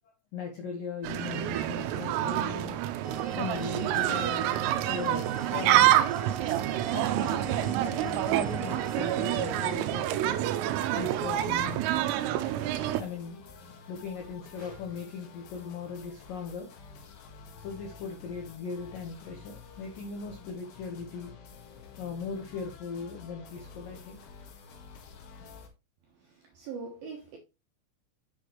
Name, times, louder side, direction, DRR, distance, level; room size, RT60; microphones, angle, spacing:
voice 1, 0.3-2.8 3.4-4.6 4.9-6.0 6.9-10.6 11.0-12.1 13.0-13.4 13.9-16.9 17.6-21.3 22.0-24.2, left 5 dB, 75° left, 2.0 m, -39 dB
sound 1, 1.0-13.0, right 13 dB, 90° right, 3.4 m, -27 dB
sound 2, 3.0-9.7, equal, ahead, 2.1 m, -43 dB
sound 3, 10.9-25.7, left 5 dB, 60° left, 2.7 m, -50 dB
voice 2, 26.2-27.4, right 5 dB, 75° right, 2.2 m, -42 dB
8.4 x 7.4 x 3.2 m
omnidirectional pair, 5.9 m